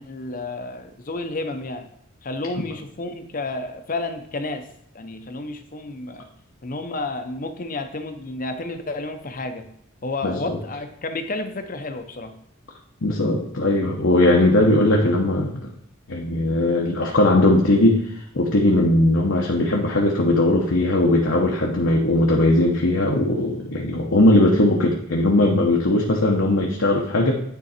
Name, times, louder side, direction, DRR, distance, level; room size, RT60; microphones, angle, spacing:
voice 1, 0.0-1.9 2.2-4.7 4.9-6.3 6.6-9.7 10.0-12.3, left 2 dB, 40° left, 7 dB, 0.7 m, -31 dB
voice 2, 10.2-10.6 13.0-15.7 16.1-18.0 18.3-27.3, left 1 dB, 70° left, -1 dB, 0.9 m, -19 dB
9.3 x 3.8 x 4.3 m, 0.73 s
head